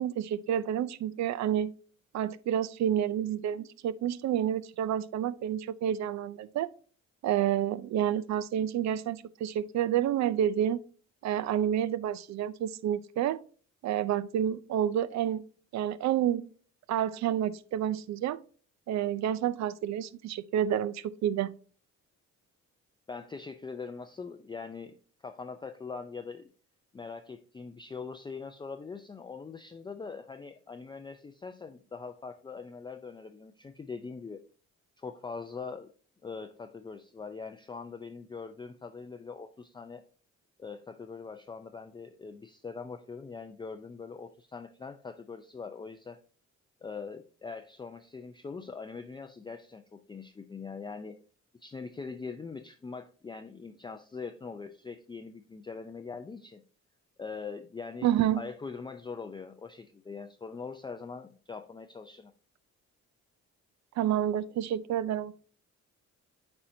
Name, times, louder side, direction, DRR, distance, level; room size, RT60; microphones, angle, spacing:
voice 1, 0.0-1.7 2.1-6.7 7.2-10.8 11.2-13.4 13.8-15.4 15.7-16.4 16.9-18.4 18.9-21.5 58.0-58.4 64.0-65.3, right 10 dB, 65° right, 0.5 m, -29 dB
voice 2, 23.1-25.0 25.2-26.5 26.9-34.4 35.0-35.9 36.2-40.0 40.6-46.2 46.8-51.2 51.6-56.6 57.2-58.1 58.3-62.3, left 5 dB, 15° left, 0.4 m, -42 dB
8.5 x 4.3 x 2.6 m
cardioid pair, 90°, 30 cm